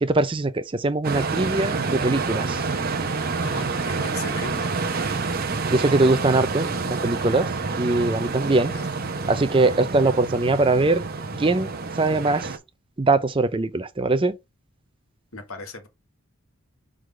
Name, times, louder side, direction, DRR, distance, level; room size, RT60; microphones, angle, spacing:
voice 1, 0.0-2.6 5.5-6.7 7.0-7.5 7.8-8.7 9.3-11.0 11.4-11.7 12.0-12.5 13.0-14.4, right 2 dB, 25° right, 0.5 m, -21 dB
sound 1, 1.0-12.6, right 4 dB, 45° right, 0.9 m, -28 dB
voice 2, 3.4-4.7 8.7-8.9 15.3-15.9, left 3 dB, 75° left, 1.7 m, -37 dB
4.8 x 3.8 x 5.2 m
head